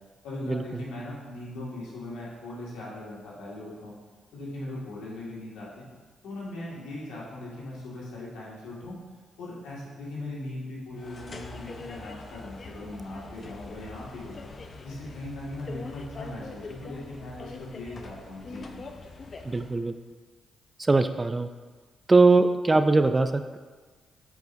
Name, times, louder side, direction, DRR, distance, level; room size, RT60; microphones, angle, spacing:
voice 1, 0.2-3.9 4.3-5.9 6.2-9.0 9.4-14.4 14.8-18.7, left 1 dB, 80° left, -6 dB, 1.9 m, -39 dB
sound 1, 11.0-19.8, left 3 dB, 45° left, 0.6 m, -43 dB
voice 2, 19.5-19.9 20.9-21.5 22.1-23.6, right 3 dB, 25° right, 10 dB, 0.4 m, -21 dB
9.2 x 4.8 x 2.6 m, 1.4 s
supercardioid pair, 55°, 0 cm